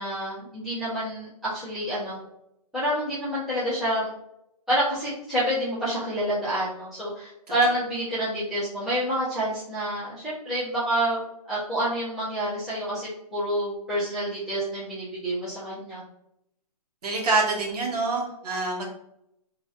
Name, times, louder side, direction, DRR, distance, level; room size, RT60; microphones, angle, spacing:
voice 1, 0.0-2.2 2.7-4.1 4.7-11.2 11.5-16.0, right 1 dB, ahead, -14 dB, 0.6 m, -28 dB
voice 2, 17.0-18.8, right 3 dB, 75° right, -1 dB, 1.1 m, -26 dB
3.0 x 2.4 x 2.7 m, 0.80 s
hypercardioid pair, 170°, 20 cm